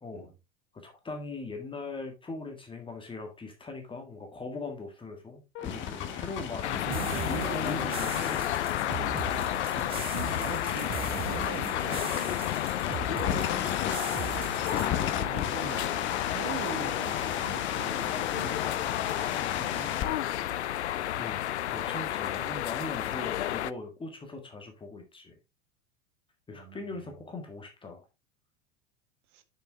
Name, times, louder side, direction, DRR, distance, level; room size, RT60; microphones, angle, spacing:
voice 1, 0.8-6.9 7.2-8.8 19.4-19.7 21.1-25.4 26.5-28.0, left 3 dB, 15° left, 1.7 m, -40 dB
sound 1, 5.5-20.1, left 9 dB, 30° left, 1.1 m, -35 dB
sound 2, 6.6-23.7, left 12 dB, 65° left, 0.5 m, -32 dB
voice 2, 6.7-8.3 9.7-10.1 10.4-12.5 14.2-14.6 15.1-20.6 21.6-22.5 26.5-27.1 29.3-29.4, right 8 dB, 45° right, 1.3 m, -43 dB
sound 3, 6.9-14.9, right 8 dB, 15° right, 0.5 m, -39 dB
6.6 x 6.5 x 3.3 m
figure-of-eight pair, 85°, 36 cm